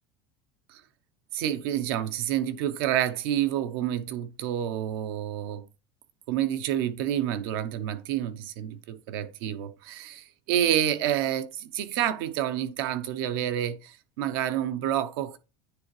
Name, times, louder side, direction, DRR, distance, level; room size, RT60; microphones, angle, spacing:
voice 1, 1.3-5.7 6.3-15.4, right 11 dB, 85° right, 0.8 m, -29 dB
9.8 x 3.6 x 3.2 m
cardioid pair, 145°, 12 cm